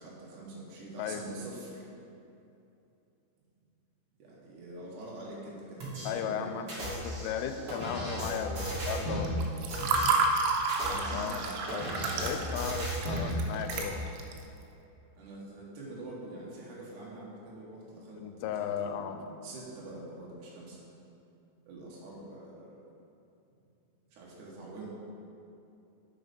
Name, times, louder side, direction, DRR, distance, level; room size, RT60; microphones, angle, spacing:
voice 1, 0.0-1.9 4.2-6.5 9.8-10.1 10.8-12.4 15.2-20.8 21.7-22.8 24.1-24.9, right 2 dB, 65° right, -6 dB, 2.1 m, -45 dB
sound 1, 5.8-6.1 6.7-9.3 9.7-10.1 10.6-13.3 13.7-13.8, right 1 dB, 40° right, 2.1 m, -35 dB
voice 2, 6.0-9.3 11.1-11.4 11.7-11.9 12.2-14.1 18.2-19.2, left 9 dB, 85° left, 8 dB, 3.0 m, -36 dB
Water / Fill (with liquid), 9.3-14.4, right 4 dB, 85° right, 3.0 m, -30 dB
8.6 x 6.4 x 5.2 m, 2.8 s
omnidirectional pair, 5.4 m